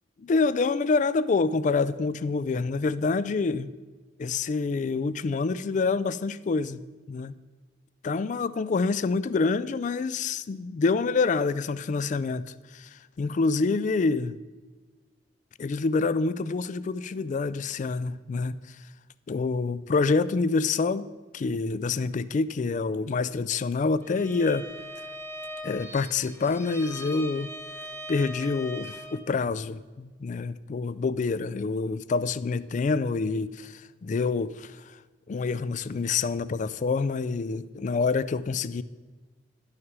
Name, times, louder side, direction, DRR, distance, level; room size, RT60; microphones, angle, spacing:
voice 1, 0.2-3.7 4.2-6.8 7.1-7.3 8.0-14.4 15.6-18.6 19.3-21.1 21.3-24.7 25.6-27.5 28.1-35.0 35.3-38.8, left 4 dB, 45° left, 0.3 m, -27 dB
Bowed string instrument, 24.0-29.3, equal, 15° left, 1.0 m, -40 dB
11.0 x 6.5 x 6.0 m
head